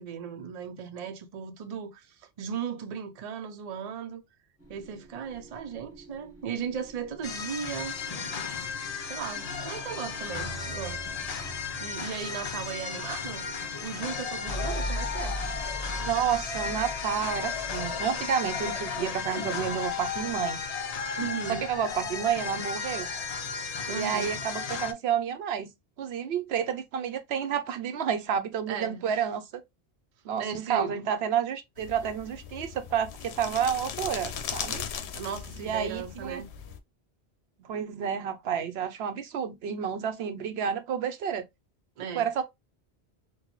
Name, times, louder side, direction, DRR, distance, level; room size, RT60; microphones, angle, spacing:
voice 1, 0.0-4.2 4.7-8.0 9.1-11.1 11.8-13.4 13.8-15.4 21.2-21.6 23.9-24.3 28.7-29.2 30.4-31.0 35.1-36.5 42.0-42.3, right 7 dB, 45° right, 0.6 m, -36 dB
sound 1, 4.6-23.4, equal, 15° right, 1.2 m, -43 dB
sound 2, 7.2-24.9, left 5 dB, 50° left, 0.5 m, -34 dB
voice 2, 16.0-20.6 21.5-23.1 23.9-25.7 26.0-29.6 30.2-34.8 35.6-36.4 37.6-41.4 42.1-42.4, right 8 dB, 75° right, 0.8 m, -30 dB
sound 3, 31.8-36.8, left 8 dB, 80° left, 0.8 m, -38 dB
4.0 x 2.2 x 3.0 m
omnidirectional pair, 1.1 m